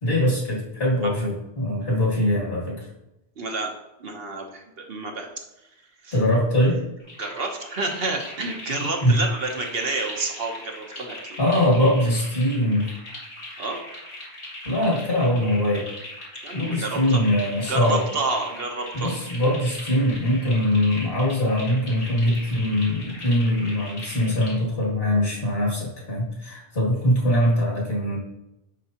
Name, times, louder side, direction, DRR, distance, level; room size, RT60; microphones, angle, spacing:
voice 1, 0.0-2.9 6.1-6.8 9.0-9.2 11.4-12.9 14.6-15.9 16.5-18.1 18.9-28.2, left 1 dB, 60° left, -4 dB, 2.5 m, -22 dB
voice 2, 3.4-3.7 4.0-5.3 6.0-6.2 7.2-11.4 13.6-13.8 16.4-17.2 17.7-19.1, right 3 dB, 65° right, 2 dB, 1.2 m, -29 dB
sound 1, 7.0-24.6, left 1 dB, 80° left, 2.4 m, -39 dB
10.0 x 4.6 x 2.9 m, 0.89 s
omnidirectional pair, 1.1 m